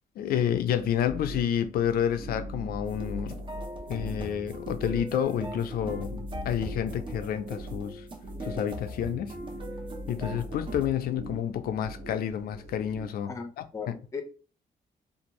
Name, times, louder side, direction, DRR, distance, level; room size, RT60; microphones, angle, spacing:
voice 1, 0.2-3.3 3.9-8.0 8.4-9.3 10.1-13.3 13.6-13.7, left 9 dB, 75° left, 0.4 m, -29 dB
sound 1, 0.7-13.0, equal, 75° right, 0.9 m, -41 dB
sound 2, 2.9-10.9, right 1 dB, 30° right, 0.6 m, -41 dB
voice 2, 13.3-14.2, left 5 dB, 20° left, 0.5 m, -37 dB
2.6 x 2.4 x 3.0 m
cardioid pair, 145°, 16 cm